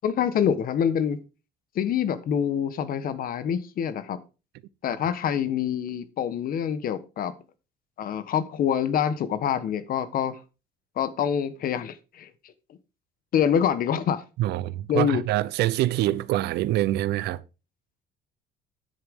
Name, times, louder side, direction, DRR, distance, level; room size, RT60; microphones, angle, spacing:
voice 1, 0.0-1.2 1.7-4.2 4.8-7.3 8.0-10.3 11.0-12.5 13.3-14.2 14.9-15.2, left 8 dB, 60° left, 1.3 m, -26 dB
voice 2, 14.4-17.4, right 15 dB, 80° right, 0.7 m, -25 dB
10.0 x 8.1 x 3.7 m
cardioid pair, 110°, 17 cm